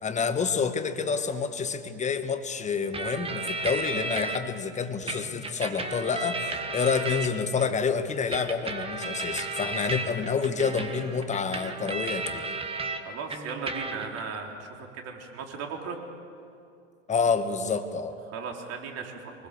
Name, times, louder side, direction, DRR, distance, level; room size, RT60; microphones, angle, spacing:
voice 1, 0.0-12.4 17.1-18.2, left 5 dB, 20° left, 8 dB, 1.5 m, -28 dB
sound 1, 2.9-4.4 5.1-7.7 8.3-13.0 13.3-14.2, right 3 dB, 15° right, 1.7 m, -34 dB
voice 2, 13.0-16.0 18.3-19.3, right 5 dB, 40° right, 2 dB, 3.7 m, -37 dB
23.5 x 21.0 x 6.8 m, 2.5 s
hypercardioid pair, 105°, 38 cm